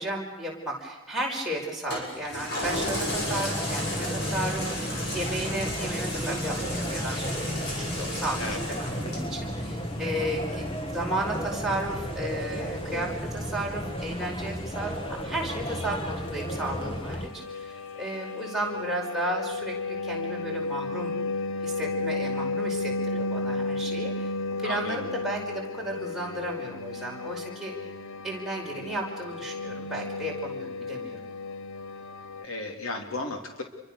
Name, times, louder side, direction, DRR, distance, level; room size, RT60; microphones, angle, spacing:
voice 1, 0.0-8.4 8.7-21.2 21.6-24.3 24.6-27.7 28.2-31.2, right 1 dB, ahead, -3 dB, 5.3 m, -34 dB
Toilet flush, 1.9-16.7 17.2-17.3, left 1 dB, 50° left, 6.9 m, -37 dB
sound 1, 2.6-17.3, equal, 25° left, 1.9 m, -33 dB
sound 2, 15.1-32.4, left 3 dB, 65° left, 0.8 m, -34 dB
voice 2, 24.6-25.0 32.4-33.6, left 2 dB, 80° left, 4 dB, 3.6 m, -34 dB
28.5 x 24.0 x 6.7 m, 1.1 s
head